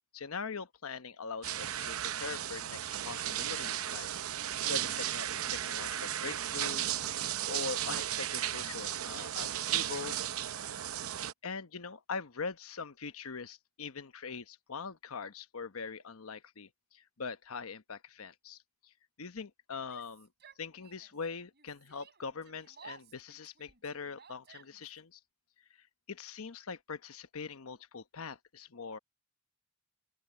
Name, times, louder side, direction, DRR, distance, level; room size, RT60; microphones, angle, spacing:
voice 1, 0.1-4.1 4.4-7.0 7.5-10.3 11.4-20.3 20.6-25.2 25.8-29.0, left 5 dB, 80° left, 1.0 m, -42 dB
sound 1, 1.4-11.3, right 11 dB, 85° right, 0.7 m, -35 dB
Yell, 19.8-21.2 21.5-25.0, right 6 dB, 50° right, 4.9 m, -57 dB
open air
head